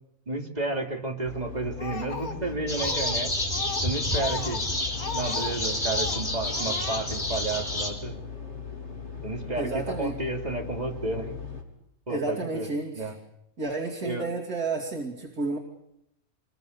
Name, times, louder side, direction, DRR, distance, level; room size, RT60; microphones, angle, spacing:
voice 1, 0.3-3.3 3.8-4.6 5.1-8.2 9.2-11.3 12.1-12.7 12.9-13.1 14.0-14.3, right 2 dB, 30° right, 1 dB, 3.3 m, -31 dB
sound 1, 1.2-11.6, left 6 dB, 50° left, 4.4 m, -39 dB
Speech, 1.8-3.2 3.5-5.6 5.8-6.2 6.5-7.0, left 4 dB, 85° left, 2.3 m, -36 dB
sound 2, 2.7-7.9, left 1 dB, 35° left, 4.5 m, -29 dB
voice 2, 9.6-10.1 12.1-13.1 13.6-15.6, right 3 dB, 80° right, -2 dB, 3.1 m, -31 dB
26.0 x 22.0 x 6.9 m, 0.82 s
omnidirectional pair, 1.5 m